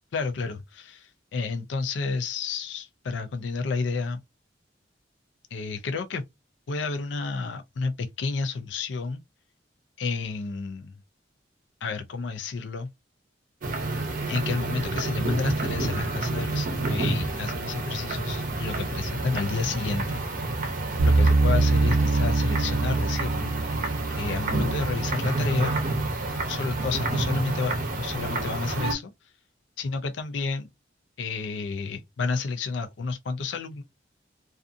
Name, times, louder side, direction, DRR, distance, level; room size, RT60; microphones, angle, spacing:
voice 1, 0.1-4.2 5.5-6.2 6.7-9.2 10.0-10.9 11.8-12.9 14.3-20.2 21.0-23.6 24.2-25.8 26.4-29.1 29.8-30.7 31.2-33.8, left 4 dB, 70° left, 0.4 m, -30 dB
sound 1, 13.6-28.9, right 2 dB, 45° right, 0.7 m, -29 dB
sound 2, 21.0-26.1, right 3 dB, 85° right, 0.5 m, -24 dB
2.5 x 2.4 x 2.5 m
head